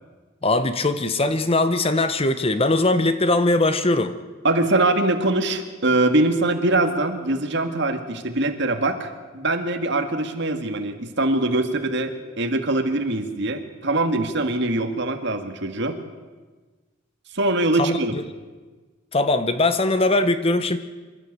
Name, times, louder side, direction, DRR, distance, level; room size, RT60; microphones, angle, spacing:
voice 1, 0.4-4.2 17.8-18.2 19.1-20.8, left 2 dB, 30° left, 10 dB, 1.0 m, -21 dB
voice 2, 4.4-16.0 17.3-18.2, right 2 dB, 60° right, 6 dB, 1.9 m, -23 dB
26.5 x 12.5 x 8.2 m, 1.3 s
head